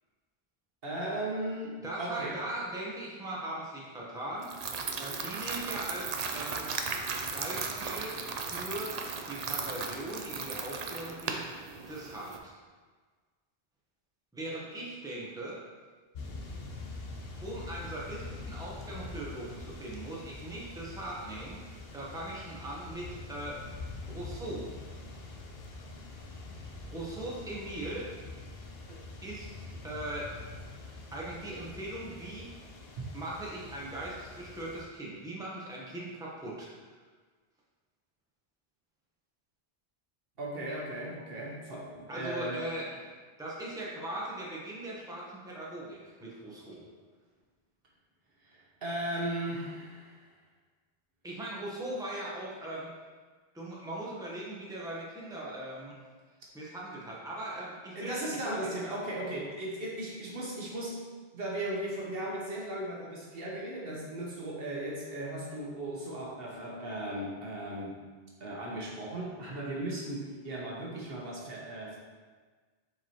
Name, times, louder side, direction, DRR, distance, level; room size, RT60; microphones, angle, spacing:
voice 1, 0.8-2.4 40.4-42.6 48.4-50.3 57.9-61.0 61.3-68.0 68.4-72.0, right 1 dB, 70° right, -3 dB, 1.3 m, -37 dB
voice 2, 1.8-4.5 4.9-6.7 7.3-9.0 9.3-11.5 11.9-12.5 14.3-15.6 17.4-21.6 21.9-23.6 24.1-24.7 26.9-28.1 29.2-30.3 31.1-32.5 33.1-36.7 42.1-42.9 43.4-46.8 51.2-52.9 53.5-56.0 56.5-58.2 58.4-58.7, right 1 dB, 5° right, -5 dB, 1.0 m, -39 dB
sound 1, 4.4-12.4, right 5 dB, 50° right, 0.5 m, -36 dB
sound 2, 16.1-34.8, left 3 dB, 70° left, 1.0 m, -45 dB
6.9 x 4.6 x 3.0 m, 1.4 s
omnidirectional pair, 1.0 m